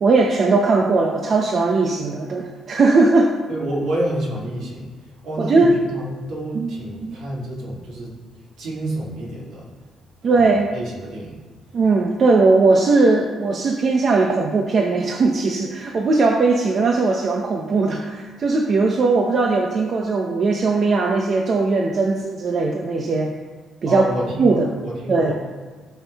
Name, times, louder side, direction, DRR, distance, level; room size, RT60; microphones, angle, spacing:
voice 1, 0.0-3.3 5.4-5.7 6.5-7.2 10.2-10.7 11.7-23.3 23.8-24.0 24.4-24.7 25.1-25.3, right 3 dB, 35° right, 1 dB, 0.8 m, -19 dB
voice 2, 3.5-8.1 8.6-9.7 10.3-11.4 23.9-25.4, right 1 dB, 70° right, -5 dB, 3.2 m, -29 dB
16.5 x 5.8 x 3.5 m, 1.4 s
cardioid pair, 165°, 0 cm